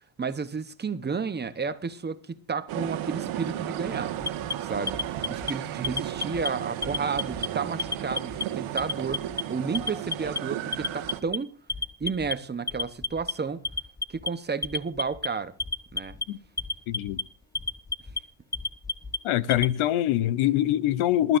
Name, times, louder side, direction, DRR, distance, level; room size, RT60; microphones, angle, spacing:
voice 1, 0.2-4.1 4.6-5.0 5.3-11.5 12.0-13.7 14.1-15.5 15.9-16.2, right 5 dB, 20° right, 0.9 m, -32 dB
sound 1, 2.7-11.2, right 12 dB, 75° right, 1.6 m, -34 dB
Alarm, 4.2-5.5 5.8-6.5 6.8-7.5 7.8-8.4 8.8-9.4 9.7-10.4 10.7-11.4 11.7-12.3 12.7-13.3 13.6-14.3 14.6-15.3 15.6-16.2 16.6-17.2 17.5-18.2 18.5-19.7, left 3 dB, 5° left, 0.5 m, -31 dB
voice 2, 16.9-17.2 19.2-21.4, left 13 dB, 80° left, 0.9 m, -24 dB
22.0 x 12.0 x 2.6 m
cardioid pair, 105°, 49 cm